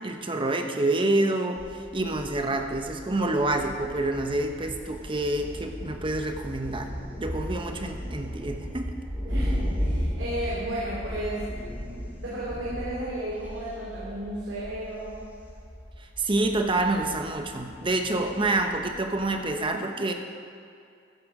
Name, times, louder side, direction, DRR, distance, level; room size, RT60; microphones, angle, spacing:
voice 1, 0.0-9.0 16.2-20.1, right 2 dB, 30° right, 5 dB, 1.1 m, -27 dB
Thunder, 1.6-19.6, equal, 10° right, 2.4 m, -36 dB
voice 2, 9.2-11.5 12.2-15.3, right 1 dB, 75° right, -8 dB, 3.2 m, -33 dB
14.5 x 10.5 x 5.0 m, 2.5 s
head